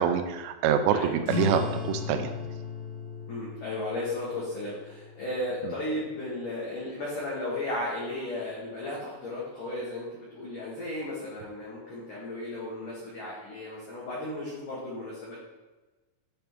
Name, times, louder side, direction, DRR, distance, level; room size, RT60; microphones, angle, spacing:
voice 1, 0.0-2.3 5.6-5.7, right 8 dB, 80° right, 7 dB, 3.0 m, -26 dB
sound 1, 1.2-6.3, left 5 dB, 40° left, 1.9 m, -36 dB
voice 2, 3.3-15.4, left 1 dB, 70° left, -7 dB, 2.0 m, -35 dB
9.9 x 3.5 x 4.5 m, 1.2 s
omnidirectional pair, 5.8 m